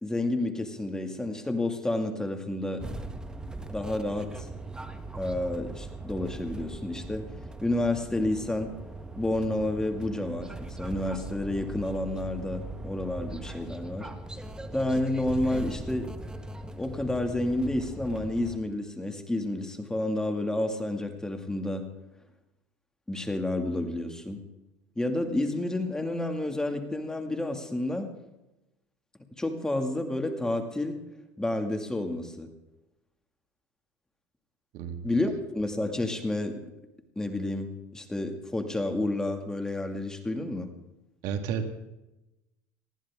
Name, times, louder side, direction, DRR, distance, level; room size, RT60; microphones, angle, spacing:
voice 1, 0.0-2.8 3.7-4.5 5.1-7.2 7.6-8.7 9.2-14.1 14.7-16.1 16.8-21.8 23.1-24.4 25.0-28.1 29.4-31.0 31.4-32.5 35.0-36.6 37.2-37.7 37.9-40.7, left 1 dB, 10° left, 5 dB, 2.2 m, -30 dB
sound 1, 2.8-18.6, right 2 dB, 10° right, 1.3 m, -40 dB
voice 2, 34.7-35.1 41.2-41.9, right 6 dB, 70° right, 7 dB, 1.9 m, -32 dB
20.0 x 14.5 x 3.7 m, 0.95 s
supercardioid pair, 105°, 7 cm